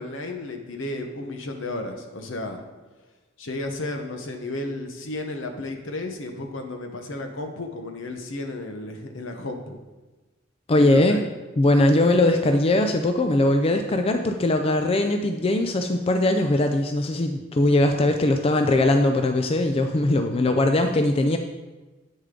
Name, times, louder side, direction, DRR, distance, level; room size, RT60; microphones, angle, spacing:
voice 1, 0.0-2.6 3.4-9.8 10.8-11.3, left 2 dB, 70° left, 4 dB, 1.0 m, -33 dB
voice 2, 10.7-11.3 11.6-21.4, left 1 dB, 30° left, 6 dB, 0.4 m, -20 dB
8.9 x 6.6 x 3.8 m, 1.2 s
head